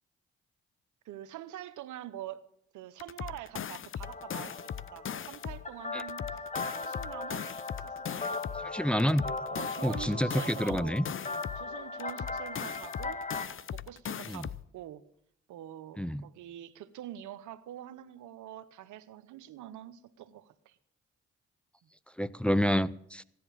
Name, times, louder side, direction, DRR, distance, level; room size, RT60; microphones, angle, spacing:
voice 1, 1.0-2.4 2.7-6.4 6.7-7.5 7.8-8.7 9.5-11.0 11.3-13.2 13.7-15.0 15.5-20.8 21.8-21.9, right 12 dB, 85° right, 15 dB, 0.8 m, -45 dB
sound 1, 3.0-5.7 6.0-8.7 9.0-11.7 12.0-14.7, left 8 dB, 45° left, 0.6 m, -39 dB
sound 2, 4.0-13.5, left 3 dB, 25° left, 1.5 m, -39 dB
voice 2, 8.6-9.3 9.8-11.0 14.3-14.5 16.0-16.3 22.2-23.2, equal, 5° left, 14 dB, 0.6 m, -28 dB
15.5 x 10.5 x 7.2 m, 0.73 s
supercardioid pair, 55°, 29 cm